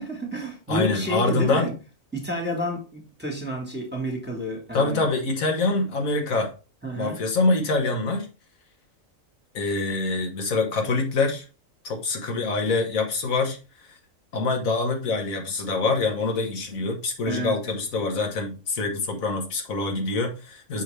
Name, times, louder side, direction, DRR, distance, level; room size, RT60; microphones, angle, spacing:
voice 1, 0.0-1.7 2.1-5.1 6.8-7.2 17.3-17.5, equal, 10° right, 1 dB, 1.5 m, -30 dB
voice 2, 0.7-1.7 4.7-6.5 6.9-8.3 9.5-11.4 11.8-13.6 14.3-20.8, left 3 dB, 85° left, 3 dB, 1.6 m, -25 dB
6.3 x 4.9 x 3.3 m, 0.33 s
omnidirectional pair, 1.4 m